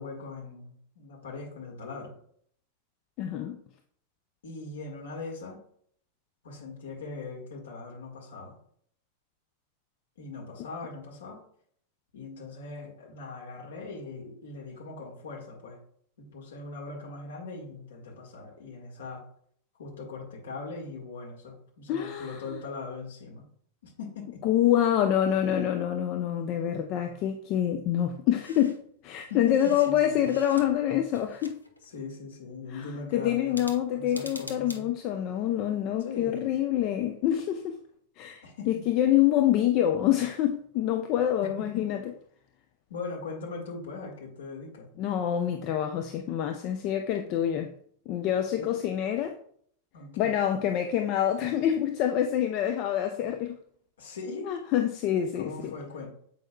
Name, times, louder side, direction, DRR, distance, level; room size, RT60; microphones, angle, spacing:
voice 1, 0.0-2.1 4.4-5.6 6.4-8.5 10.2-11.4 12.1-15.8 16.2-19.2 19.8-23.4 23.8-24.4 29.3-30.2 31.8-34.9 36.0-36.6 38.4-38.7 41.6-41.7 42.9-44.9 48.6-48.8 49.9-50.4 54.0-54.5 55.4-56.1, left 4 dB, 65° left, 1.7 m, -40 dB
voice 2, 3.2-3.6 21.9-22.4 24.4-31.6 32.7-37.8 38.2-42.0 45.0-47.7 48.1-49.4 50.2-53.6 54.5-55.7, left 11 dB, 40° left, 0.5 m, -26 dB
sound 1, 28.4-28.8 29.2-30.8 31.1-32.0 33.5-34.8, left 1 dB, 85° left, 0.7 m, -46 dB
7.7 x 5.3 x 2.3 m
figure-of-eight pair, 90°, 0 cm